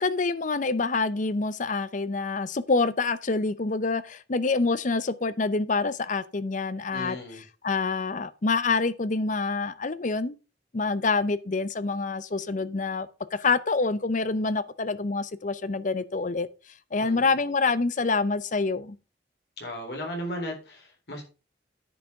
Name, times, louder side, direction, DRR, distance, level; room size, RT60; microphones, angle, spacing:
voice 1, 0.0-7.2 7.6-10.4 10.7-16.5 16.9-19.0, left 3 dB, 45° left, 0.6 m, -26 dB
voice 2, 6.9-7.4 17.0-17.3 19.6-21.2, equal, 65° left, 3.9 m, -36 dB
10.0 x 6.0 x 4.8 m
head